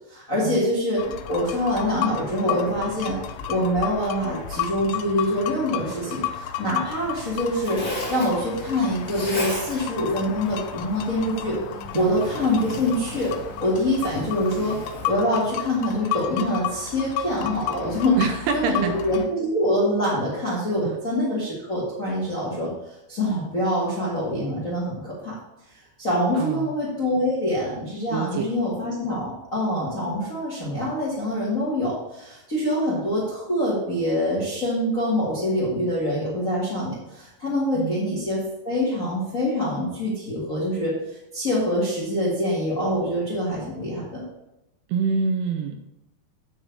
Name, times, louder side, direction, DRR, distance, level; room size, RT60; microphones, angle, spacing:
voice 1, 0.1-1.0 1.3-3.2 3.5-7.8 8.1-11.6 11.9-13.3 13.6-14.8 15.1-18.2 18.5-22.7 23.1-25.4 26.0-44.2, left 1 dB, 40° left, -6 dB, 1.1 m, -25 dB
sound 1, 1.0-19.3, left 10 dB, 90° left, 2.9 m, -33 dB
Zipper (clothing), 6.9-15.1, equal, 15° left, 2.2 m, -36 dB
voice 2, 18.2-18.9 20.8-21.0 26.4-26.7 28.1-28.4 37.7-38.0 44.9-45.8, right 6 dB, 80° right, 6 dB, 2.4 m, -26 dB
9.1 x 4.7 x 6.6 m, 0.90 s
omnidirectional pair, 5.0 m